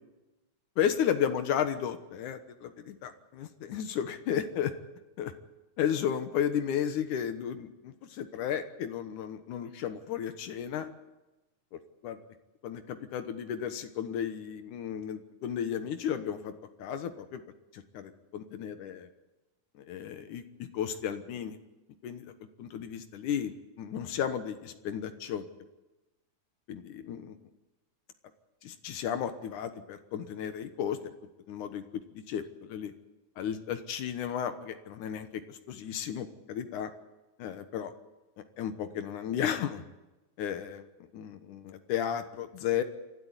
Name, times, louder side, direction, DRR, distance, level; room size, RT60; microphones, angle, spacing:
voice 1, 0.8-4.7 5.2-5.3 5.8-10.9 11.7-12.2 12.6-16.5 16.8-17.4 17.7-19.1 19.8-21.6 22.0-22.3 22.6-25.5 26.7-27.4 28.6-31.0 31.5-32.0 32.3-32.9 33.4-36.9 37.4-37.9 38.6-39.8 40.4-42.8, left 9 dB, 80° left, 9 dB, 2.6 m, -34 dB
28.0 x 12.5 x 9.7 m, 1.1 s
omnidirectional pair, 3.5 m